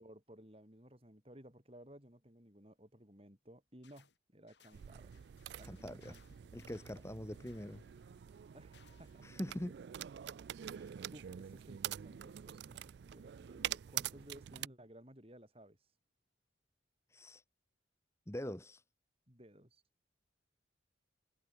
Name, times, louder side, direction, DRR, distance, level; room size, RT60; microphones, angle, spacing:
voice 1, 0.0-5.3 5.6-6.2 8.5-9.3 11.1-16.0 19.3-19.8, equal, 30° right, 6.4 m, -58 dB
sound 1, 3.8-4.2 4.5-9.3, left 6 dB, 65° left, 6.8 m, -69 dB
sound 2, 4.7-14.7, right 11 dB, 60° right, 0.3 m, -46 dB
voice 2, 5.7-6.1 6.5-7.8 9.2-9.7 10.7-10.9 17.1-17.4 18.3-18.8, equal, 15° left, 1.3 m, -43 dB
head